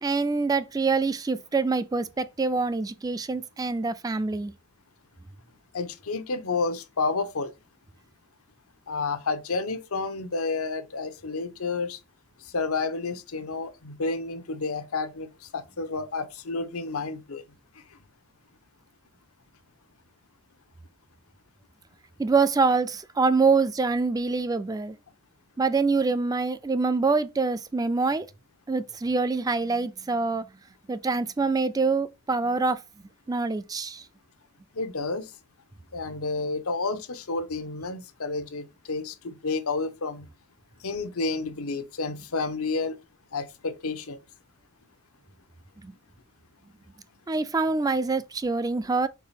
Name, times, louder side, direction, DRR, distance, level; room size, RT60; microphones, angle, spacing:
voice 1, 0.0-4.5 22.2-25.0 25.6-28.3 28.7-30.5 30.9-32.8 33.3-34.0 45.8-45.9 47.3-49.1, right 4 dB, 15° right, 0.3 m, -25 dB
voice 2, 5.7-7.5 8.9-12.0 12.5-17.4 34.7-35.3 35.9-40.3 40.8-43.0 43.3-44.2, left 3 dB, 85° left, 0.9 m, -30 dB
4.7 x 4.0 x 5.6 m
head